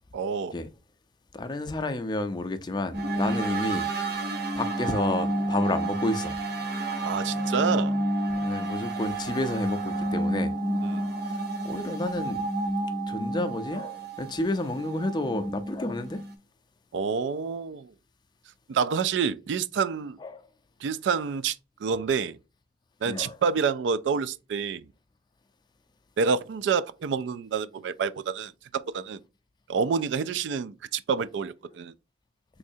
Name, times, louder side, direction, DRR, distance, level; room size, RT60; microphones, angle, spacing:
voice 1, 0.1-0.6 3.3-3.4 7.0-8.0 10.8-11.1 16.9-17.9 18.7-20.2 20.8-21.6 21.8-22.4 23.0-24.9 26.2-28.5 28.9-29.2 29.7-31.9, right 6 dB, 85° right, 0.3 m, -28 dB
voice 2, 1.3-3.9 4.5-6.3 8.4-10.5 11.3-12.4 13.1-16.2 20.2-20.4 23.0-23.4, left 2 dB, 25° left, 0.4 m, -30 dB
sound 1, 2.9-16.3, right 1 dB, 55° right, 0.8 m, -30 dB
3.6 x 3.1 x 2.6 m
head